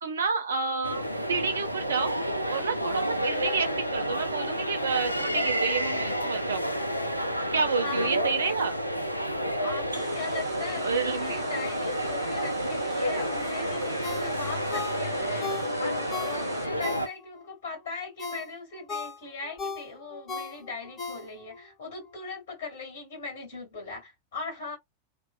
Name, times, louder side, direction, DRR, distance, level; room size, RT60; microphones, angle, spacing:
voice 1, 0.0-2.1 2.5-6.6 7.5-8.8 10.8-11.4, right 5 dB, 65° right, 0.5 m, -29 dB
sound 1, 0.8-17.1, equal, 90° left, 0.3 m, -30 dB
voice 2, 7.8-8.3 9.2-24.8, left 4 dB, 55° left, 1.8 m, -39 dB
sound 2, 9.9-16.7, right 4 dB, 20° right, 0.6 m, -44 dB
Ringtone, 14.0-17.5 17.9-21.6 22.0-22.1, left 4 dB, 25° left, 1.1 m, -38 dB
2.9 x 2.0 x 2.2 m
figure-of-eight pair, 90°, 0 cm